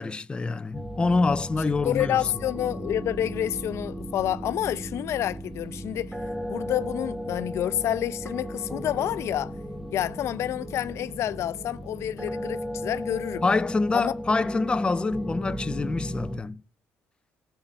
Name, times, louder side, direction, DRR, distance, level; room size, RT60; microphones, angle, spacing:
voice 1, 0.0-2.2 13.4-16.6, left 3 dB, 20° left, 0.5 m, -26 dB
sound 1, 0.7-16.4, equal, 5° right, 1.2 m, -35 dB
voice 2, 1.8-6.1 6.5-9.5 9.9-13.4 13.9-14.1, left 11 dB, 70° left, 0.6 m, -28 dB
14.5 x 5.8 x 9.0 m
cardioid pair, 105°, 5 cm